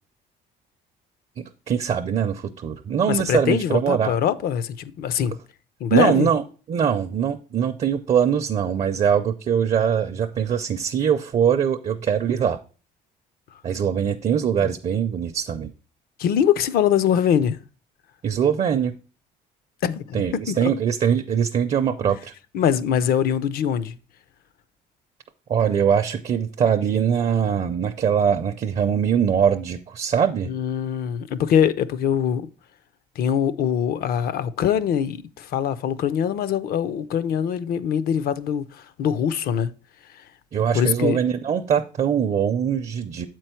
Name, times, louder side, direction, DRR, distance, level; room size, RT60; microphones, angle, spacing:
voice 1, 1.4-4.1 5.9-6.4 6.7-12.6 13.6-15.7 18.2-18.9 20.1-22.3 25.5-30.5 40.5-43.3, right 8 dB, 40° right, 0.5 m, -22 dB
voice 2, 3.1-5.4 5.8-6.3 16.2-17.6 19.8-20.7 22.5-23.9 30.4-32.5 33.2-39.7 40.7-41.2, left 9 dB, 65° left, 0.5 m, -23 dB
7.5 x 4.5 x 4.4 m
cardioid pair, 110°, 17 cm